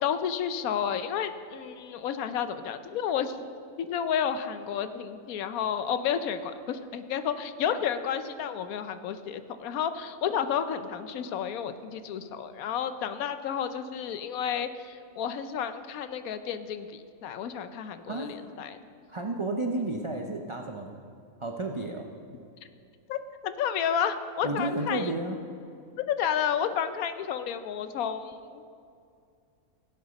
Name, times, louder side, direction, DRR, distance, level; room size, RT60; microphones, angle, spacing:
voice 1, 0.0-3.4 3.8-18.8 23.1-23.2 23.4-25.1 26.1-28.6, left 8 dB, 75° left, 10 dB, 1.1 m, -31 dB
voice 2, 18.1-18.4 19.1-21.0 21.4-22.1 24.4-25.4, right 2 dB, 40° right, 2 dB, 0.4 m, -32 dB
16.5 x 8.0 x 5.2 m, 2.4 s
omnidirectional pair, 1.5 m